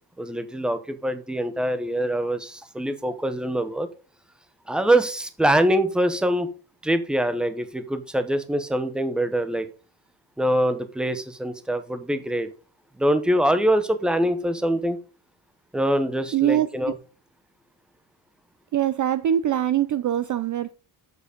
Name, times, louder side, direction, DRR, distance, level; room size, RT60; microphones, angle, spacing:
voice 1, 0.2-3.9 4.7-6.5 6.8-9.7 10.4-12.5 13.0-15.0 15.7-16.9, right 1 dB, ahead, 10 dB, 0.7 m, -24 dB
voice 2, 16.3-16.7 18.7-20.7, right 11 dB, 40° right, 14 dB, 0.4 m, -23 dB
7.7 x 6.9 x 5.0 m, 0.35 s
cardioid pair, 165°, 50 cm